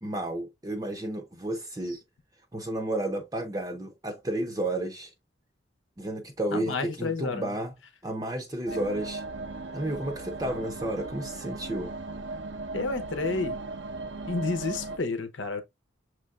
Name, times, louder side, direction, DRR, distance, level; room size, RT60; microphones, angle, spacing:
voice 1, 0.0-2.0 2.5-5.1 6.0-7.7 8.0-9.2 9.7-11.9, right 1 dB, 20° right, 0.6 m, -32 dB
voice 2, 6.5-7.5 8.7-8.8 12.7-13.6 14.2-15.6, left 3 dB, 90° left, 0.9 m, -30 dB
sound 1, 8.7-15.0, right 3 dB, 80° right, 0.8 m, -37 dB
6.4 x 3.2 x 2.4 m
head